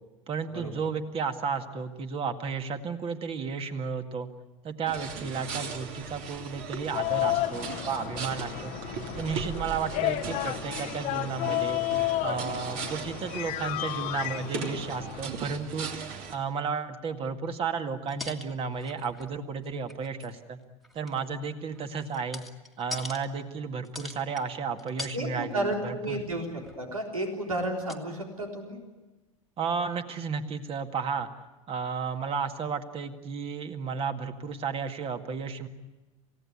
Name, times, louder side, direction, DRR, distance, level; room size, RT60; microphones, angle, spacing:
voice 1, 0.3-4.3 4.6-8.7 9.1-11.8 12.2-20.6 20.9-22.4 22.8-26.2 29.6-31.3 31.7-35.7, right 5 dB, 35° right, 7 dB, 2.0 m, -33 dB
sound 1, 4.9-16.3, right 5 dB, 50° right, 3.0 m, -38 dB
sound 2, 6.9-15.3, left 16 dB, 45° left, 1.0 m, -32 dB
sound 3, 18.1-19.4 19.6-20.4 20.8-23.3 23.8-24.5 24.8-25.2 25.5-25.8 26.1-26.9 27.6-27.7 27.9-28.0, left 2 dB, ahead, 1.9 m, -42 dB
voice 2, 25.1-28.8, right 1 dB, 90° right, 1 dB, 3.9 m, -32 dB
28.0 x 16.5 x 9.6 m, 1.1 s
figure-of-eight pair, 85°, 17 cm